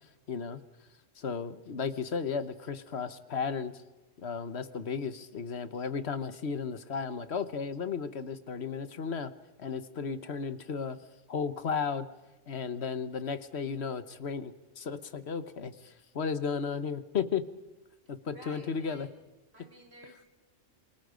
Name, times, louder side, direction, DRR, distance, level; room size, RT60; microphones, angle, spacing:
voice 1, 0.3-0.6 1.2-3.8 4.2-9.3 9.6-11.0 11.3-12.1 12.5-17.5 18.1-19.1, left 6 dB, 55° left, 13 dB, 1.3 m, -34 dB
voice 2, 18.3-19.1 19.5-20.3, right 1 dB, 50° right, 1 dB, 3.2 m, -52 dB
28.0 x 23.5 x 5.1 m, 1.1 s
omnidirectional pair, 1.4 m